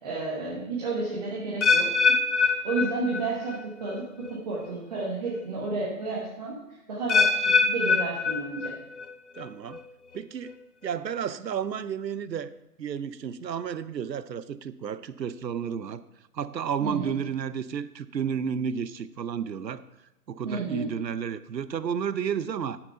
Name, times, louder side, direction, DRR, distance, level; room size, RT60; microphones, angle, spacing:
voice 1, 0.0-1.9 2.4-4.0 4.3-6.6 6.9-8.7 16.8-17.2 20.4-20.9, right 3 dB, 25° right, 1.2 m, -31 dB
sound 1, 1.6-3.6 3.9-4.3 5.0-5.1 7.1-9.0 9.4-9.8 10.5-10.6, left 4 dB, 45° left, 0.6 m, -24 dB
voice 2, 9.3-9.8 10.1-10.6 10.8-12.5 12.8-16.0 16.3-19.9 20.3-22.8, right 7 dB, 90° right, 0.7 m, -32 dB
9.5 x 6.0 x 5.4 m
hypercardioid pair, 160°, 49 cm